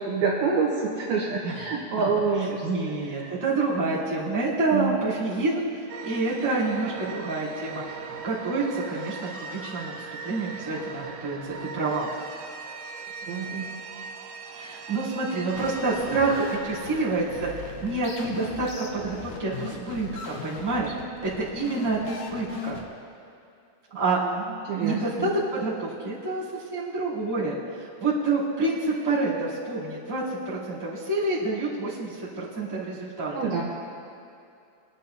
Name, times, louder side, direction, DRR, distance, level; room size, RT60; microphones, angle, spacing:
voice 1, 0.0-2.7 3.2-3.3 4.7-5.0 13.3-13.7 14.6-14.8 24.2-24.3 24.7-25.3 33.3-33.6, right 5 dB, 75° right, -3 dB, 2.4 m, -27 dB
voice 2, 2.6-8.0 8.2-9.9 10.2-12.1 14.5-20.9 21.2-22.8 23.9-24.2 24.8-33.3, right 3 dB, 5° right, -11 dB, 1.9 m, -28 dB
sound 1, 5.9-18.4, right 5 dB, 90° right, 3.2 m, -39 dB
sound 2, 15.5-22.8, left 5 dB, 80° left, 1.7 m, -38 dB
24.0 x 10.0 x 2.7 m, 2.5 s
omnidirectional pair, 5.1 m